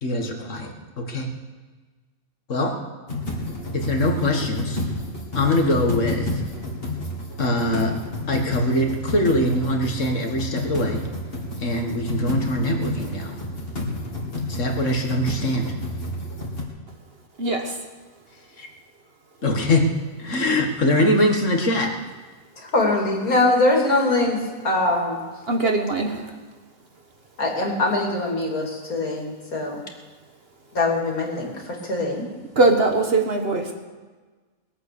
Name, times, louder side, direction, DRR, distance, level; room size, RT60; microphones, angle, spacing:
voice 1, 0.0-1.3 2.5-2.8 3.7-4.8 5.3-6.4 7.4-8.0 8.3-11.0 11.6-13.4 14.5-15.7 18.6-18.7 19.4-19.9 20.2-21.9, left 1 dB, 55° left, 3 dB, 2.1 m, -22 dB
sound 1, 3.1-16.6, left 1 dB, 40° left, 2.7 m, -30 dB
voice 2, 17.4-17.8 25.5-26.3 32.5-33.7, right 2 dB, 45° right, 4 dB, 1.5 m, -21 dB
voice 3, 22.6-24.4 24.6-25.2 27.4-29.8 30.7-32.2, left 2 dB, 80° left, 0 dB, 3.2 m, -22 dB
21.0 x 8.4 x 6.8 m, 1.4 s
omnidirectional pair, 1.5 m